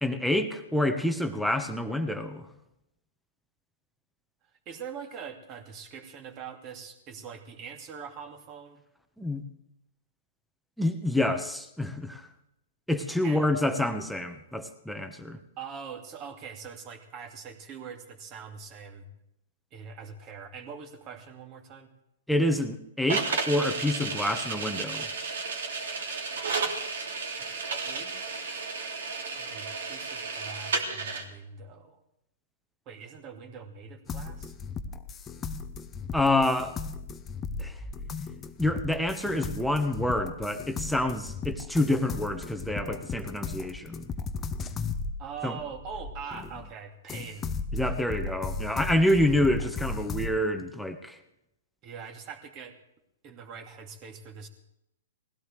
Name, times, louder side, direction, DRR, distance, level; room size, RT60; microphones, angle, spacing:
voice 1, 0.0-2.5 9.2-9.4 10.8-12.3 12.9-15.4 22.3-25.1 36.1-36.7 37.6-37.8 38.6-44.0 45.4-45.6 47.7-51.2, left 1 dB, ahead, 6 dB, 1.2 m, -27 dB
voice 2, 4.7-8.8 13.2-13.5 15.6-19.1 19.7-21.9 27.8-28.3 29.3-32.0 32.9-34.5 45.2-47.5 51.8-52.8 53.2-54.5, right 6 dB, 35° right, 5 dB, 2.4 m, -43 dB
sound 1, 23.1-31.2, right 4 dB, 70° right, 2.9 m, -33 dB
sound 2, 34.1-46.7 47.1-50.4, left 4 dB, 20° left, 1.0 m, -36 dB
20.0 x 16.0 x 3.4 m, 0.82 s
hypercardioid pair, 120°, 0 cm